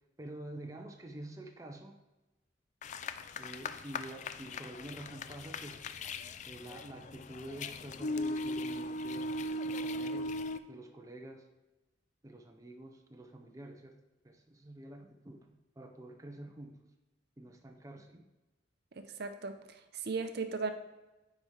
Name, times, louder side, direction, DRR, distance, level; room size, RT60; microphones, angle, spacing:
voice 1, 0.2-2.0 3.4-5.9 6.4-10.4 10.7-11.5 12.2-14.0 14.2-16.8 17.4-18.2, right 1 dB, 15° right, 3 dB, 0.5 m, -48 dB
sound 1, 2.8-10.6, left 1 dB, 40° left, 0.3 m, -39 dB
voice 2, 18.9-20.7, right 4 dB, 55° right, 7 dB, 0.6 m, -37 dB
9.6 x 4.8 x 3.3 m, 1.1 s
head